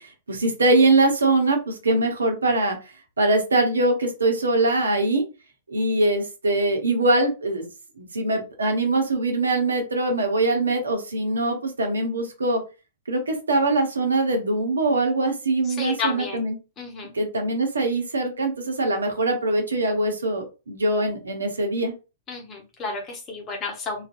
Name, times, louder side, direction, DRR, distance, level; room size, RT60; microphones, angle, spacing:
voice 1, 0.0-2.8 3.2-5.2 5.7-7.7 8.0-12.6 13.1-16.6 17.1-21.9, right 2 dB, 80° right, 4 dB, 0.8 m, -22 dB
voice 2, 15.8-16.4 16.8-17.1 22.3-24.1, left 4 dB, 25° left, 0 dB, 0.9 m, -31 dB
2.6 x 2.4 x 2.6 m, 0.30 s
figure-of-eight pair, 105°, 0 cm